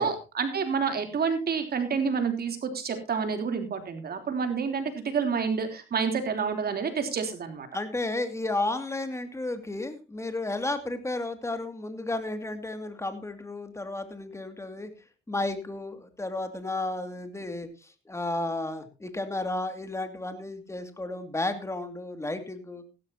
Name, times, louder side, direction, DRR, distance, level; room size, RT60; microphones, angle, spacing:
voice 1, 0.0-7.7, right 5 dB, 50° right, 6 dB, 3.4 m, -29 dB
voice 2, 7.7-14.9 15.3-22.8, left 2 dB, 15° left, 8 dB, 2.4 m, -33 dB
16.0 x 13.0 x 2.9 m, 0.29 s
cardioid pair, 90°, 20 cm